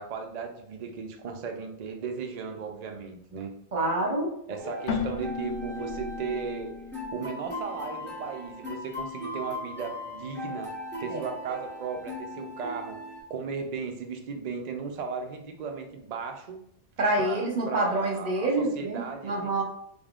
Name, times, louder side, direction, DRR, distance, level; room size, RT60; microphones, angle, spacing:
voice 1, 0.0-3.5 4.5-6.7 7.1-10.7 11.0-13.0 13.3-16.6 17.2-19.5, right 5 dB, 75° right, 4 dB, 0.3 m, -36 dB
voice 2, 3.7-4.3 11.1-11.2 17.0-19.6, right 2 dB, 40° right, -1 dB, 0.8 m, -27 dB
sound 1, 4.6-13.2, left 2 dB, 10° right, 1.4 m, -39 dB
Keyboard (musical), 4.9-8.5, left 5 dB, 60° left, 0.8 m, -36 dB
4.2 x 3.5 x 2.4 m, 0.74 s
omnidirectional pair, 1.4 m